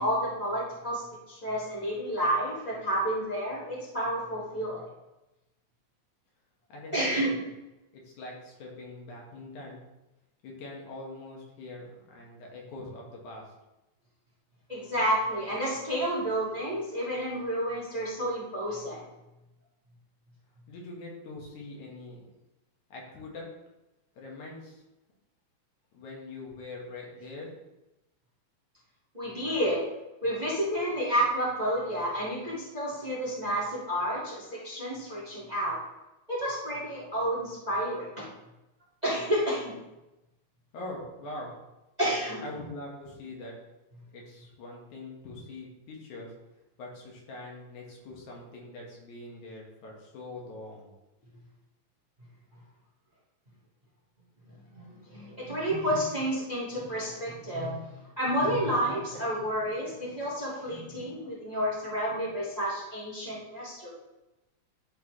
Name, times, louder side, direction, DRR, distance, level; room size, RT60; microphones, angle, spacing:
voice 1, 0.0-4.9 6.9-7.3 14.7-19.0 29.1-29.8 30.2-35.8 36.3-38.2 39.0-39.7 42.0-42.4 54.5-57.8 58.2-63.9, equal, 15° right, -6 dB, 1.5 m, -30 dB
voice 2, 6.7-7.3 7.9-9.8 10.4-13.4 20.7-22.2 22.9-23.4 24.2-24.8 25.9-27.5 40.7-41.5 42.4-43.5 44.1-46.3 46.8-50.9, left 2 dB, 80° left, -2 dB, 3.0 m, -43 dB
11.5 x 4.1 x 3.2 m, 0.98 s
omnidirectional pair, 3.4 m